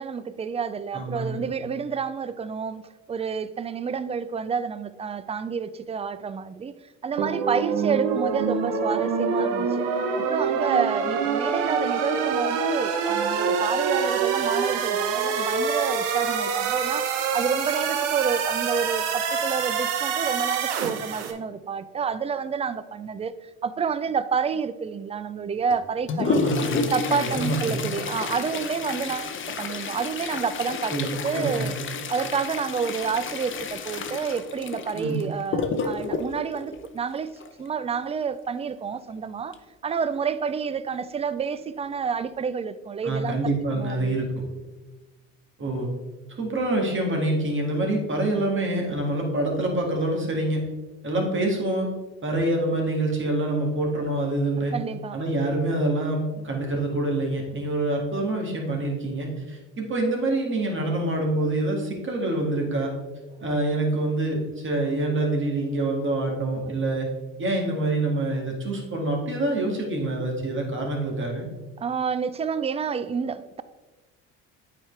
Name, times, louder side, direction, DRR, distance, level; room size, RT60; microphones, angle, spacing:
voice 1, 0.0-2.8 3.1-6.7 7.0-9.8 10.2-17.1 17.3-26.4 26.9-30.9 31.2-31.7 32.1-37.3 37.6-39.6 39.8-43.4 43.7-44.2 54.7-55.2 71.8-73.6, right 6 dB, 20° right, 0.4 m, -29 dB
voice 2, 0.9-1.4 26.3-27.9 30.9-31.8 34.9-35.2 43.0-44.4 45.6-45.9 46.4-50.7 51.0-51.9 52.2-54.7 55.1-62.9 63.4-67.1 67.4-71.5, right 2 dB, 35° right, 2.2 m, -26 dB
sound 1, 7.2-21.3, right 6 dB, 80° right, 0.9 m, -26 dB
Toilet flush, 25.7-37.7 39.5-39.6 40.0-40.1 40.8-40.9 41.6-41.8 42.3-42.4, left 4 dB, 35° left, 0.8 m, -30 dB
8.6 x 4.8 x 3.3 m
supercardioid pair, 75°, 35 cm